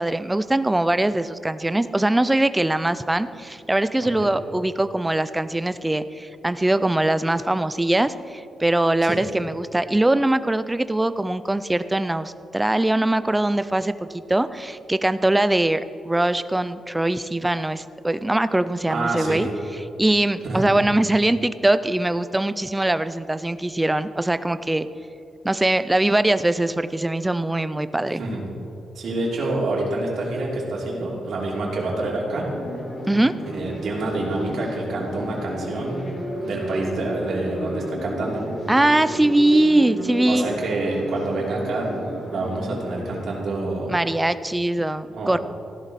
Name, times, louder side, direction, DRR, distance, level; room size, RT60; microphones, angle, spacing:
voice 1, 0.0-19.5 20.0-24.9 25.4-28.2 33.1-33.3 38.7-40.5 43.9-45.4, right 1 dB, 10° right, 13 dB, 0.4 m, -22 dB
voice 2, 18.9-19.4 20.4-20.7 28.2-28.4 28.9-32.5 33.4-36.1 36.4-38.4 40.3-43.9 45.1-45.4, right 2 dB, 60° right, -3 dB, 3.0 m, -27 dB
sound 1, 32.4-43.2, equal, 35° left, 2.5 m, -33 dB
15.0 x 11.5 x 4.1 m, 2.7 s
wide cardioid pair, 145°, 0 cm